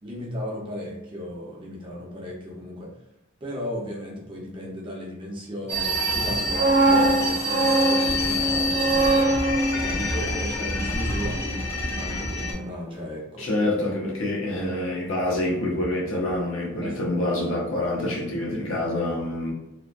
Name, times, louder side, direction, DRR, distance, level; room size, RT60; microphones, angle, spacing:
voice 1, 0.0-3.0 3.4-9.4 9.8-13.8 16.8-17.2, left 1 dB, 25° right, 0.6 m, -35 dB
sound 1, 5.7-12.5, left 1 dB, 15° left, 0.5 m, -28 dB
sound 2, 6.2-12.2 12.5-12.7, right 2 dB, 70° right, 0.7 m, -24 dB
voice 2, 13.4-19.5, left 1 dB, 80° left, 0.8 m, -26 dB
2.8 x 2.1 x 2.4 m
head